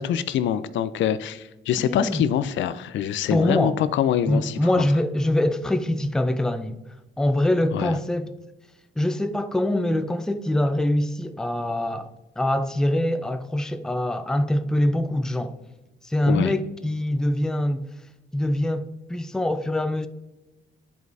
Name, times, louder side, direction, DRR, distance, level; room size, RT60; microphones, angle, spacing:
voice 1, 0.0-4.9 7.7-7.9 16.3-16.5, left 10 dB, 70° left, 0.4 m, -25 dB
voice 2, 1.8-2.2 3.3-3.8 4.3-6.8 7.2-8.3 9.0-15.6 16.0-17.9 18.3-20.1, left 1 dB, 5° left, 0.4 m, -24 dB
10.5 x 4.7 x 2.6 m
cardioid pair, 90°, 20 cm